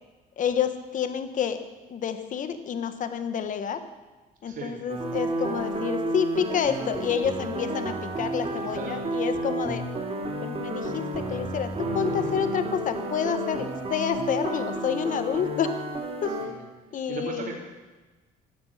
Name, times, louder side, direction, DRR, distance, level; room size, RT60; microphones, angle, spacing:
voice 1, 0.4-1.6 1.9-3.8 4.4-9.8 10.4-15.7 16.2-16.3 16.9-17.5, left 7 dB, 50° left, 9 dB, 1.5 m, -29 dB
voice 2, 4.4-4.7 8.4-9.0 12.3-12.5 16.2-16.6 16.9-17.6, right 5 dB, 60° right, -4 dB, 3.3 m, -38 dB
sound 1, 4.9-16.5, right 1 dB, 35° right, 3.7 m, -31 dB
15.5 x 12.0 x 7.4 m, 1.2 s
cardioid pair, 110°, 17 cm